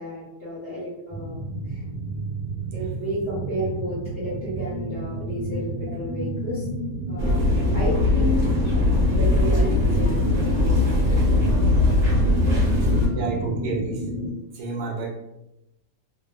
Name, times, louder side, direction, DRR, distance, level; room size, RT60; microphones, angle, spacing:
voice 1, 0.0-1.4 1.6-1.8 2.7-6.7 7.1-8.4 8.7-13.2, equal, 50° left, -8 dB, 0.7 m, -33 dB
sound 1, 1.1-14.3, right 1 dB, 75° left, 1.2 m, -30 dB
sound 2, 7.2-13.1, left 2 dB, 35° right, 1.0 m, -20 dB
voice 2, 13.1-15.1, right 3 dB, 90° right, 0 dB, 1.3 m, -31 dB
3.0 x 2.1 x 2.3 m, 0.88 s
omnidirectional pair, 1.8 m